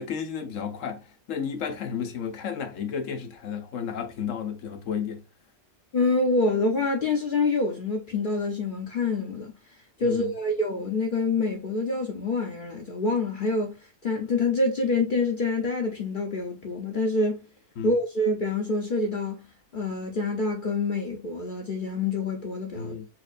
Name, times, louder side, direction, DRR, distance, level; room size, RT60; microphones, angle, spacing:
voice 1, 0.0-5.2 10.0-10.3 17.8-18.0 22.7-23.1, left 7 dB, 85° left, 1.1 m, -32 dB
voice 2, 5.9-9.5 10.0-13.8 14.0-17.4 17.8-19.5 19.7-22.9, left 3 dB, 50° left, 0.7 m, -26 dB
4.4 x 2.5 x 2.4 m
omnidirectional pair, 1.3 m